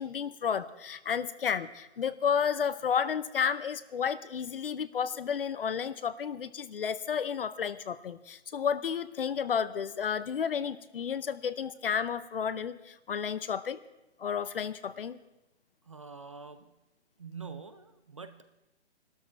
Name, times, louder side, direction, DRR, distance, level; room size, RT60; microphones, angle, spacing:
voice 1, 0.0-13.8 14.2-15.2, left 7 dB, 55° left, 15 dB, 0.8 m, -32 dB
voice 2, 15.8-16.8 17.2-18.4, right 5 dB, 30° right, 10 dB, 0.5 m, -45 dB
20.0 x 12.5 x 4.5 m, 0.97 s
hypercardioid pair, 165°, 34 cm